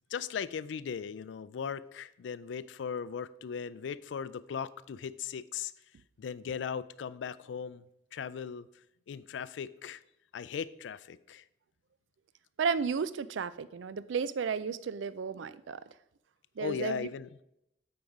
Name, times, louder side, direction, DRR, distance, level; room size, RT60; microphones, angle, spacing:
voice 1, 0.1-5.7 6.2-8.7 9.1-10.0 10.3-11.4 16.6-17.3, left 7 dB, 80° left, 17 dB, 0.3 m, -38 dB
voice 2, 12.6-15.8 16.6-17.1, right 6 dB, 85° right, 15 dB, 0.4 m, -33 dB
8.5 x 4.7 x 5.3 m, 0.83 s
head